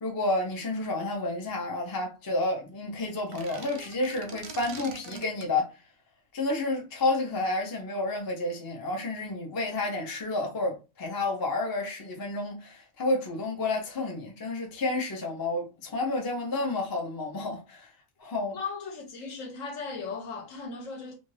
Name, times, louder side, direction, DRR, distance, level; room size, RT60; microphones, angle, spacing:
voice 1, 0.0-5.7 6.3-17.9 18.2-18.6, left 2 dB, 25° left, 0.4 m, -30 dB
sound 1, 3.2-5.5, right 4 dB, 60° right, 0.7 m, -43 dB
voice 2, 18.5-21.2, left 4 dB, 75° left, 1.2 m, -37 dB
2.6 x 2.5 x 3.1 m
omnidirectional pair, 1.4 m